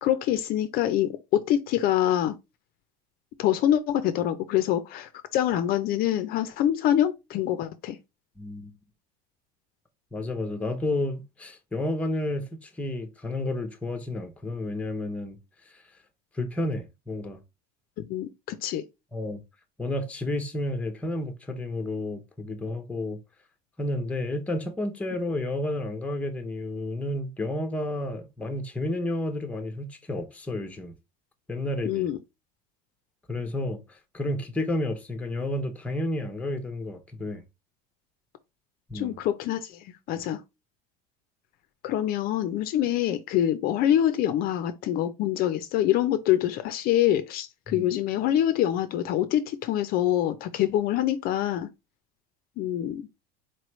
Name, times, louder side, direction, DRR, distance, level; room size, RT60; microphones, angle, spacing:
voice 1, 0.0-2.4 3.4-8.0 18.0-18.8 31.8-32.2 38.9-40.4 41.8-51.7 52.6-53.1, left 11 dB, 50° left, 0.5 m, -25 dB
voice 2, 8.4-8.7 10.1-15.4 16.3-17.4 19.1-19.4 19.8-23.2 23.8-30.9 31.5-32.1 33.3-33.8 34.1-37.4 38.9-39.2 40.2-40.3 47.7-47.9, left 1 dB, 5° left, 0.7 m, -31 dB
4.3 x 3.1 x 3.0 m
supercardioid pair, 130°, 20 cm